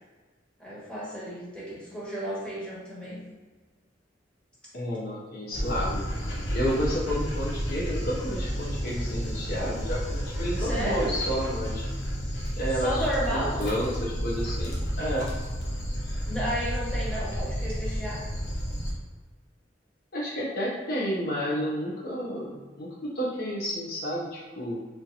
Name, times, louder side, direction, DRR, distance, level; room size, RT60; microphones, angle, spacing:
voice 1, 0.6-3.2 10.6-11.1 12.7-13.5 16.3-18.2, equal, 5° left, -9 dB, 1.4 m, -32 dB
voice 2, 4.7-6.0 6.5-11.8 12.6-15.3 20.1-24.7, equal, 55° left, -4 dB, 0.7 m, -31 dB
Dog, 5.5-18.9, equal, 75° left, 1.0 m, -31 dB
4.0 x 3.5 x 2.8 m, 1.4 s
head